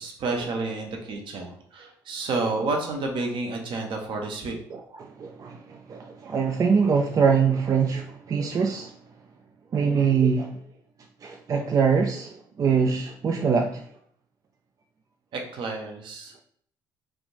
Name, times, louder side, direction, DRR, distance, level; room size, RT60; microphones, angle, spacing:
voice 1, 0.0-4.6 15.3-16.4, right 3 dB, 55° right, 0.8 m, -30 dB
voice 2, 4.7-8.9 9.7-10.6 11.2-13.9, right 6 dB, 35° right, 0.4 m, -24 dB
3.4 x 2.5 x 2.8 m
hypercardioid pair, 55°, 10 cm